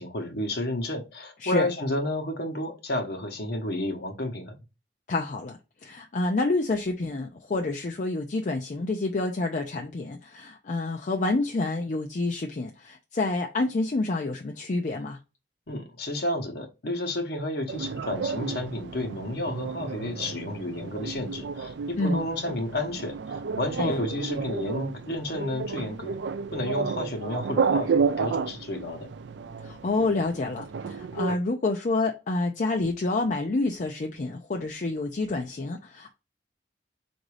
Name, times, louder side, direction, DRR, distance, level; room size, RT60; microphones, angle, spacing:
voice 1, 0.0-4.5 15.7-26.2 26.5-29.1, left 1 dB, 65° left, 1.0 m, -31 dB
voice 2, 5.1-15.2 22.0-22.2 23.8-24.0 29.6-36.1, left 2 dB, 45° left, 0.5 m, -28 dB
sound 1, 17.7-31.4, right 5 dB, 80° right, 0.4 m, -31 dB
3.9 x 2.6 x 4.7 m
head